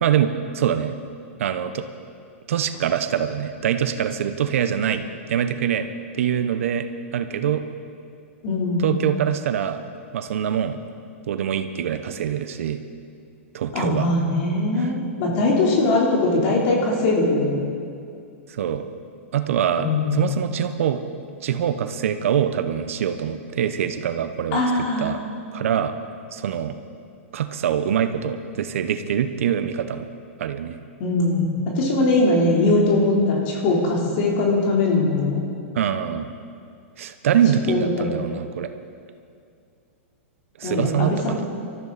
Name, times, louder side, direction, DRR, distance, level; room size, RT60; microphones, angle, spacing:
voice 1, 0.0-0.9 1.4-1.8 2.5-5.9 6.1-6.9 7.1-7.6 8.8-9.8 10.1-10.8 11.3-12.8 13.5-14.1 14.8-14.9 18.5-18.8 19.3-19.9 20.1-21.0 21.4-24.6 25.0-25.2 25.5-25.9 26.3-26.7 27.3-30.1 30.4-30.8 35.7-36.3 37.0-38.7 40.6-41.5, right 9 dB, 75° right, 9 dB, 0.9 m, -24 dB
voice 2, 8.4-8.9 13.7-17.6 19.8-20.3 24.5-25.1 31.0-31.5 31.7-35.4 37.7-38.1 40.6-41.4, left 2 dB, 50° left, -3 dB, 3.7 m, -21 dB
21.0 x 13.5 x 4.2 m, 2.4 s
hypercardioid pair, 130°, 7 cm